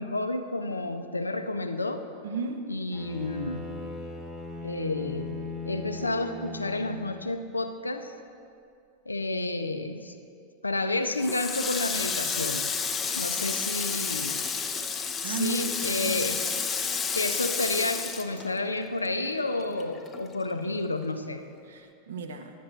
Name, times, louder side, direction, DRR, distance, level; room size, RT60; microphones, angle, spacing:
voice 1, 0.0-2.0 2.7-3.7 4.6-8.1 9.1-10.2 10.6-12.7 13.2-14.4 15.2-16.4 16.8-21.4, left 2 dB, 80° left, 8 dB, 0.5 m, -31 dB
voice 2, 2.2-2.6 15.2-16.2 21.7-22.5, right 3 dB, 60° right, 5 dB, 0.8 m, -33 dB
Bowed string instrument, 2.9-7.4, left 4 dB, 5° right, 1.1 m, -39 dB
Water tap faucet, 11.2-19.1 19.4-20.7, left 5 dB, 20° left, 0.6 m, -31 dB
9.8 x 9.4 x 4.3 m, 2.5 s
figure-of-eight pair, 90°, 0 cm